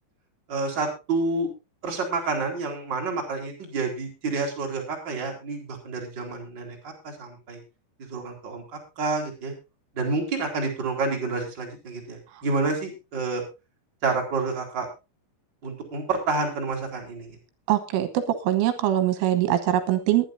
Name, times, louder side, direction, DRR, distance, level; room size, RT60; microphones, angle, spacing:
voice 1, 0.5-1.5 1.8-7.6 8.1-8.6 9.0-9.5 9.9-13.4 14.0-14.9 15.6-17.4, right 3 dB, 25° right, 1 dB, 3.8 m, -29 dB
voice 2, 17.7-20.3, right 12 dB, 80° right, 9 dB, 3.6 m, -23 dB
21.5 x 10.5 x 2.6 m, 0.28 s
omnidirectional pair, 5.7 m